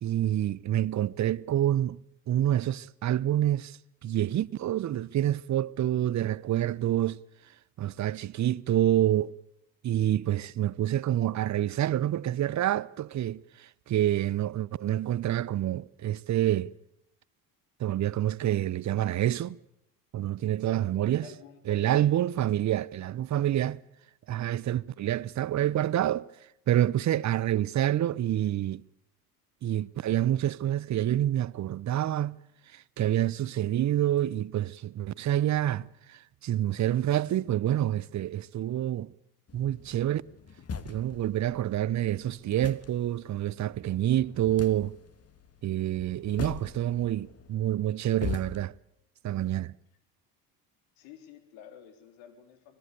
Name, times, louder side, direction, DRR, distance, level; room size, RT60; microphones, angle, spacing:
voice 1, 0.0-2.0 2.3-3.8 4.0-7.2 7.8-9.3 9.8-13.4 13.9-16.7 17.8-19.6 20.1-21.3 21.7-23.8 24.3-26.3 26.7-28.8 29.6-32.4 33.0-35.9 36.4-39.1 39.5-40.2 40.9-44.9 45.6-48.7 49.2-49.7, right 12 dB, 35° right, 0.7 m, -27 dB
voice 2, 20.8-22.1 51.0-52.8, left 9 dB, 70° left, 3.8 m, -50 dB
sound 1, 39.5-48.7, left 6 dB, 30° left, 1.7 m, -42 dB
25.0 x 19.0 x 6.8 m
hypercardioid pair, 70°, 47 cm